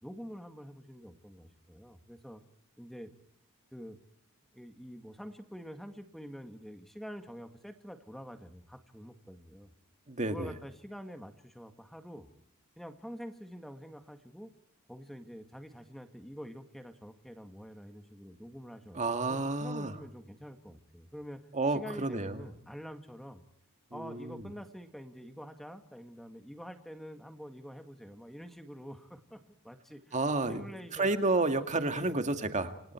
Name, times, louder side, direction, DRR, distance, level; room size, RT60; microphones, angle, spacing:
voice 1, 0.0-2.4 2.8-3.1 3.7-4.0 4.5-9.7 10.3-12.3 12.8-14.5 14.9-19.0 19.3-21.4 21.7-23.4 23.9-30.2 30.5-31.2 31.6-32.3, equal, ahead, 7 dB, 2.0 m, -47 dB
voice 2, 10.1-10.5 18.9-20.0 21.5-22.4 23.9-24.4 30.1-30.6 30.9-32.9, right 2 dB, 35° right, 7 dB, 2.1 m, -31 dB
29.0 x 27.0 x 4.6 m, 0.64 s
head